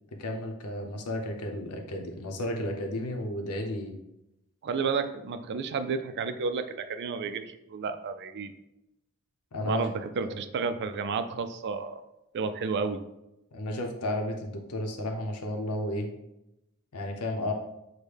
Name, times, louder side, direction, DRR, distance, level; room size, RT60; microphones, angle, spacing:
voice 1, 0.2-4.0 9.5-9.9 10.2-10.3 13.5-16.1 16.9-17.5, left 1 dB, 85° left, 3 dB, 0.8 m, -33 dB
voice 2, 4.6-8.5 9.6-12.0 12.3-13.0, right 5 dB, 50° right, 10 dB, 0.3 m, -31 dB
6.2 x 2.2 x 3.4 m, 0.88 s
head